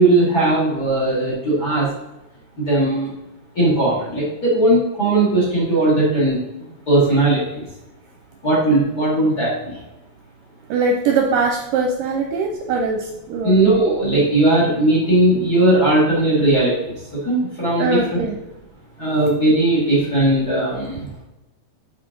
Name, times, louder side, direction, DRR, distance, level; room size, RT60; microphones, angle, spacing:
voice 1, 0.0-1.9 2.6-3.1 3.6-6.4 6.9-7.6 8.4-9.7 13.4-16.9 17.2-17.9 18.1-18.2 19.0-21.0, right 2 dB, 30° left, -6 dB, 2.1 m, -17 dB
voice 2, 10.7-13.6 17.8-18.4, right 4 dB, 75° right, 2 dB, 2.1 m, -21 dB
7.3 x 5.7 x 3.8 m, 0.96 s
omnidirectional pair, 4.4 m